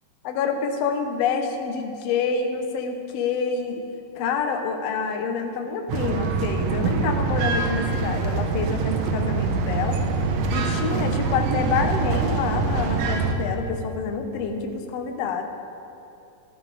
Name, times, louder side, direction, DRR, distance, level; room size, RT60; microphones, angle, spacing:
voice 1, 0.2-3.8 4.1-10.0 10.5-15.4, left 5 dB, 70° left, 4 dB, 1.6 m, -27 dB
sound 1, 5.9-13.3, right 4 dB, 75° right, 1.5 m, -24 dB
15.5 x 13.5 x 5.0 m, 2.7 s
omnidirectional pair, 4.2 m